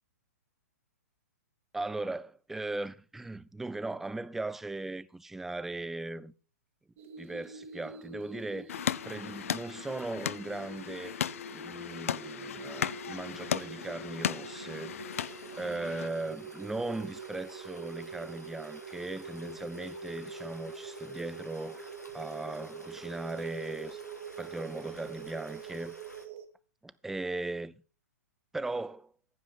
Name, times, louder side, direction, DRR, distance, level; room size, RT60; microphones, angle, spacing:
voice 1, 1.7-6.3 7.2-8.8 9.0-11.2 11.5-15.0 15.6-24.0 24.4-25.9 26.8-27.7 28.5-29.1, right 2 dB, 5° right, 0.4 m, -38 dB
Naquadach reactor going faster, 7.0-26.5, right 4 dB, 50° right, 2.0 m, -45 dB
sound 1, 8.7-16.1, left 9 dB, 55° left, 0.5 m, -36 dB
sound 2, 15.1-26.3, left 1 dB, 90° left, 1.9 m, -52 dB
15.0 x 5.2 x 5.6 m
figure-of-eight pair, 115°, 9 cm